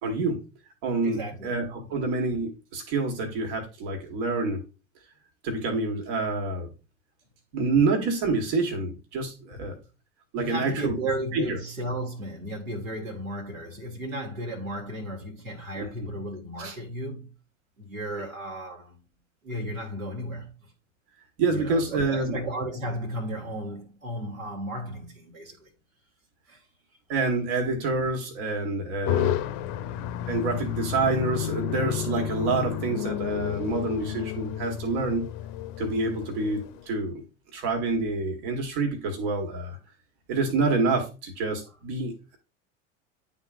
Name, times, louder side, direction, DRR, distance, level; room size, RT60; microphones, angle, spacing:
voice 1, 0.0-0.4 0.8-4.6 5.4-6.7 7.5-9.7 10.3-11.0 11.3-11.6 15.8-15.9 16.6-16.7 21.4-22.4 27.1-29.4 30.3-35.3 35.8-37.2 37.5-39.8 40.3-42.4, right 3 dB, 55° right, 1.6 m, -27 dB
voice 2, 1.0-1.5 1.8-2.0 9.5-9.7 10.3-17.3 17.8-19.0 19.4-20.7 21.5-25.7 26.5-26.6, right 1 dB, 85° right, 1.8 m, -34 dB
sound 1, 29.0-36.8, left 11 dB, 45° left, 0.6 m, -31 dB
10.5 x 3.7 x 2.5 m
figure-of-eight pair, 80°, 40 cm